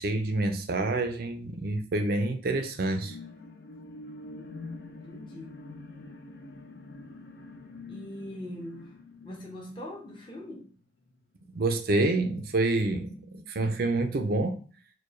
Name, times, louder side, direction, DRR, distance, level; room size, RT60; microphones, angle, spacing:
voice 1, 0.0-3.2 11.5-14.6, right 2 dB, 55° right, 0.5 m, -27 dB
sound 1, 2.8-10.6 11.1-11.2, left 3 dB, 60° left, 0.6 m, -46 dB
voice 2, 4.3-4.7 5.0-5.7 7.9-8.9 9.2-10.7, left 1 dB, 25° left, 0.8 m, -42 dB
4.4 x 2.2 x 3.1 m
head